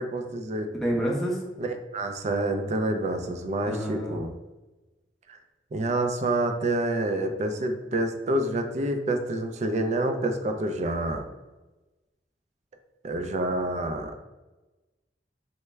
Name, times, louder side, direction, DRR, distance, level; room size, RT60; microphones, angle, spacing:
voice 1, 0.0-0.7 1.6-4.3 5.7-11.2 13.0-14.1, right 1 dB, 40° right, 6 dB, 0.3 m, -28 dB
voice 2, 0.8-1.4 3.7-4.2, right 1 dB, ahead, -3 dB, 0.6 m, -28 dB
3.2 x 2.1 x 3.4 m, 1.1 s
head